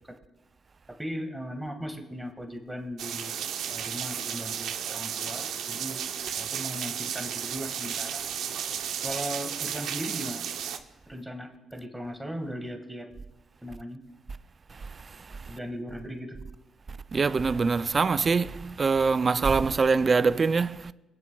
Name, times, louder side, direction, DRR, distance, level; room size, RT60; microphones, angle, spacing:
voice 1, 1.0-3.4 3.7-6.0 6.3-8.2 9.0-10.5 11.1-13.1 13.6-14.0 15.5-16.4, equal, 5° right, 1.7 m, -37 dB
sound 1, 3.0-10.8, right 9 dB, 80° right, 0.6 m, -33 dB
voice 2, 14.7-15.6 16.9-20.9, right 4 dB, 35° right, 0.3 m, -25 dB
18.5 x 9.9 x 2.3 m
cardioid pair, 90°, 0 cm